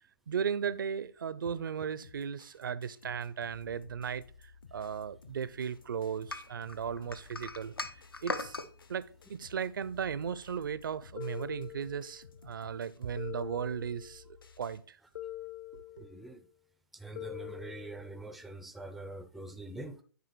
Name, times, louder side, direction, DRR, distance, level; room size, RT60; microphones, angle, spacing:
voice 1, 0.3-4.2 4.7-7.7 8.2-8.6 8.9-15.0 15.7-16.0, right 7 dB, 65° right, 0.5 m, -36 dB
sound 1, 2.0-14.8, left 5 dB, 70° left, 1.1 m, -56 dB
sound 2, 6.3-8.7, left 2 dB, 90° left, 0.9 m, -38 dB
sound 3, 11.2-12.3 13.2-14.3 15.1-16.3 17.1-18.3, left 14 dB, 55° left, 0.7 m, -44 dB
voice 2, 16.0-16.5 16.9-20.0, right 2 dB, ahead, 0.4 m, -44 dB
9.5 x 4.0 x 4.4 m
figure-of-eight pair, 130°, 12 cm